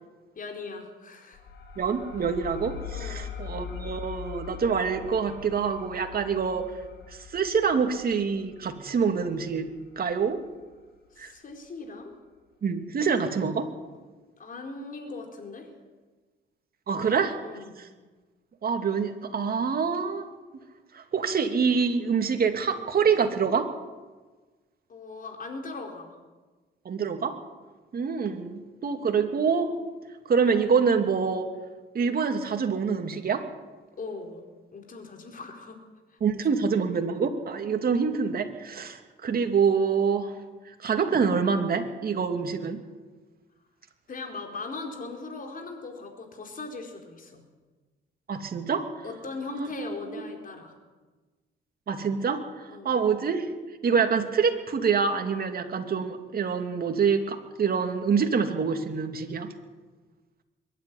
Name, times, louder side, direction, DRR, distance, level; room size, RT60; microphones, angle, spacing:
voice 1, 0.4-1.4 2.9-3.4 11.1-12.1 14.4-15.7 17.0-17.2 17.4-17.7 24.9-26.1 34.0-34.4 34.7-35.8 44.1-47.4 49.0-50.7 52.7-53.0, left 3 dB, 45° left, 3 dB, 4.5 m, -39 dB
sound 1, 1.3-10.6, left 7 dB, 60° left, 4.5 m, -42 dB
voice 2, 1.8-6.7 7.3-9.7 10.0-10.4 11.2-11.3 12.6-13.7 16.9-17.4 17.8-17.9 18.6-20.2 20.9-23.7 26.8-27.4 27.9-29.7 30.3-31.5 31.9-33.4 36.2-40.3 40.8-42.8 48.3-48.8 49.5-50.2 51.9-52.4 52.8-53.5 53.8-59.5, right 6 dB, 50° right, 5 dB, 2.6 m, -26 dB
22.5 x 12.0 x 9.7 m, 1.3 s
cardioid pair, 90°, 20 cm